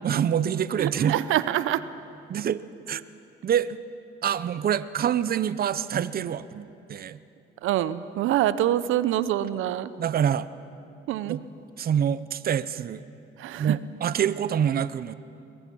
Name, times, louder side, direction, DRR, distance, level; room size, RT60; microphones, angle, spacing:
voice 1, 0.0-1.2 2.3-3.0 3.4-3.8 4.2-7.2 10.0-10.5 11.3-11.4 11.8-13.0 13.6-15.1, right 9 dB, 50° right, 15 dB, 0.7 m, -26 dB
voice 2, 0.8-1.8 7.6-9.9 11.1-11.4 13.4-13.8, right 12 dB, 85° right, 15 dB, 0.7 m, -25 dB
23.0 x 21.5 x 6.2 m, 2.7 s
cardioid pair, 90°, 20 cm